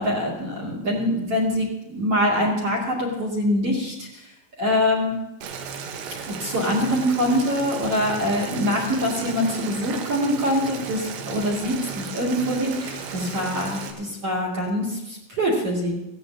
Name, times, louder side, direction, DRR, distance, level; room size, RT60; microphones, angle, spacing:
voice 1, 0.0-4.1 4.6-5.1 6.2-16.0, equal, 40° right, -3 dB, 2.5 m, -24 dB
Boiling, 5.4-13.9, right 6 dB, 70° right, 3.2 m, -35 dB
17.0 x 16.5 x 2.8 m, 0.88 s
omnidirectional pair, 5.9 m